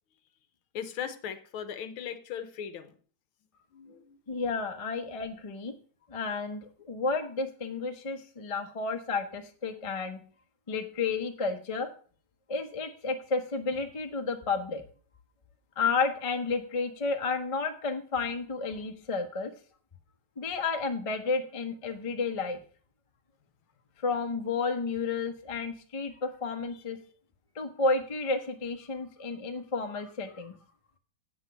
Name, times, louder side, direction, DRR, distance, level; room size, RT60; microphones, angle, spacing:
voice 1, 0.7-2.9 3.7-4.2, left 8 dB, 75° left, 11 dB, 1.7 m, -38 dB
voice 2, 4.3-5.7 6.1-10.2 10.7-11.9 12.5-14.8 15.8-19.5 20.4-22.6 24.0-27.0 27.5-30.5, left 4 dB, 30° left, 5 dB, 0.6 m, -31 dB
8.2 x 6.2 x 6.6 m, 0.42 s
omnidirectional pair, 2.3 m